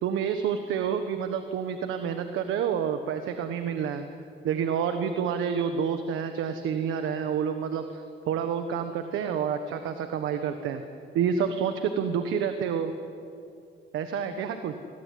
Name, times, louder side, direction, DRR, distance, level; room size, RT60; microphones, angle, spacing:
voice 1, 0.0-4.0 4.4-10.8 11.1-12.9 13.9-14.7, right 7 dB, 90° right, 8 dB, 1.4 m, -28 dB
28.0 x 21.0 x 9.5 m, 2.6 s
cardioid pair, 90°, 20 cm